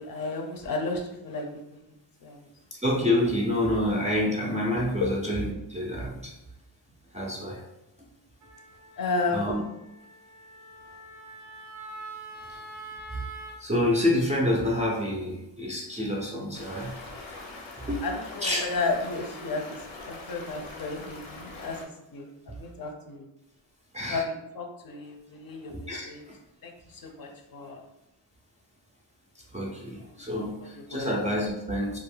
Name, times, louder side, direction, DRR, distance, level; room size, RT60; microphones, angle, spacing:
voice 1, 0.0-1.8 2.2-2.5 9.0-9.5 18.0-19.8 20.1-23.3 24.1-24.2 24.5-25.7 26.1-26.2 26.6-27.8 30.9-31.1, left 3 dB, 45° left, 3 dB, 0.5 m, -33 dB
voice 2, 2.7-6.3 7.1-7.6 9.3-9.6 12.5-13.3 13.6-17.0 17.8-18.1 18.4-18.6 22.5-22.6 23.9-24.2 25.7-26.4 29.3-32.0, left 1 dB, 15° right, -3 dB, 0.3 m, -28 dB
Wind instrument woodwind instrument, 8.4-13.6, right 2 dB, 85° right, 0.6 m, -44 dB
Stream, 16.5-21.9, left 2 dB, 85° left, 0.7 m, -42 dB
2.3 x 2.1 x 3.1 m, 0.88 s
cardioid pair, 80°, 47 cm